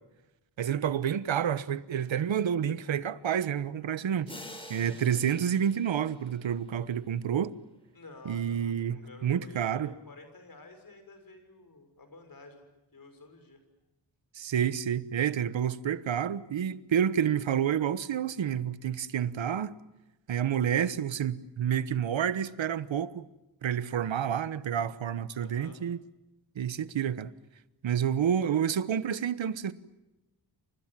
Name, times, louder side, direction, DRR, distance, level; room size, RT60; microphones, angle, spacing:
voice 1, 0.6-4.3 4.7-7.5 8.2-9.9 14.3-19.7 20.3-23.3 23.6-26.0 26.5-27.3 27.8-29.7, right 9 dB, 80° right, 1.2 m, -29 dB
sound 1, 4.3-7.1, left 1 dB, 10° left, 5.0 m, -48 dB
voice 2, 7.9-12.7 12.9-13.6 25.4-25.8, left 3 dB, 50° left, 6.4 m, -51 dB
29.5 x 26.0 x 7.6 m
wide cardioid pair, 110°, 45 cm